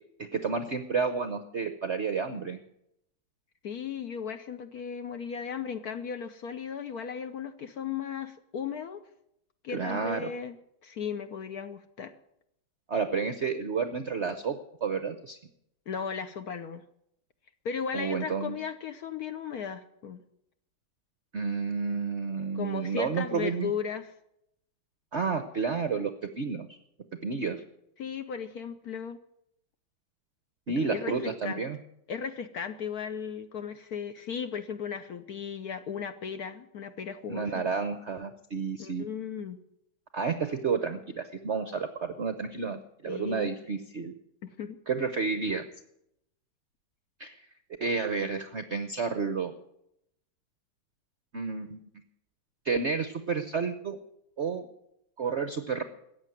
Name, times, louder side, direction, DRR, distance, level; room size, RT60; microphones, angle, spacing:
voice 1, 0.3-2.6 9.7-10.3 12.9-15.4 17.9-18.5 21.3-23.7 25.1-26.8 27.2-27.6 30.7-31.8 37.3-39.1 40.1-44.1 44.9-45.7 47.2-47.4 47.8-49.5 51.3-51.8 52.6-54.0 54.4-54.7 55.2-55.8, right 5 dB, 60° right, 9 dB, 0.7 m, -31 dB
voice 2, 3.6-9.0 9.6-10.5 10.8-12.1 15.9-16.8 17.6-20.2 22.5-24.1 28.0-29.2 30.9-31.6 32.1-37.7 38.8-39.6 43.1-43.5 44.4-44.8, left 7 dB, 65° left, 9 dB, 1.0 m, -36 dB
14.5 x 8.7 x 9.0 m, 0.79 s
omnidirectional pair, 2.2 m